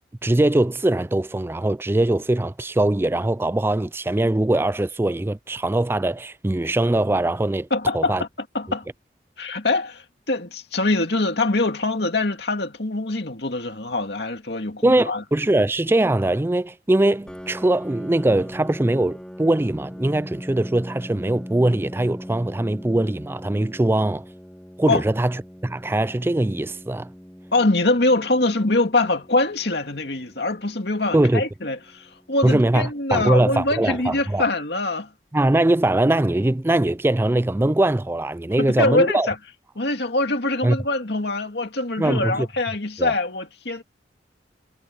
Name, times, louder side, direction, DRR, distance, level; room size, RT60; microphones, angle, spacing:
voice 1, 0.2-7.7 7.9-8.2 14.8-24.2 24.8-25.3 25.6-27.1 31.1-31.4 32.4-34.5 35.3-39.3 40.6-40.8 42.0-42.5 43.0-43.1, right 1 dB, 15° right, 0.4 m, -21 dB
voice 2, 7.7-8.3 8.5-8.9 9.4-15.2 24.9-25.0 27.5-35.1 38.6-39.4 39.8-43.8, left 2 dB, 65° left, 2.5 m, -23 dB
Piano, 17.3-32.7, equal, 5° left, 3.6 m, -41 dB
head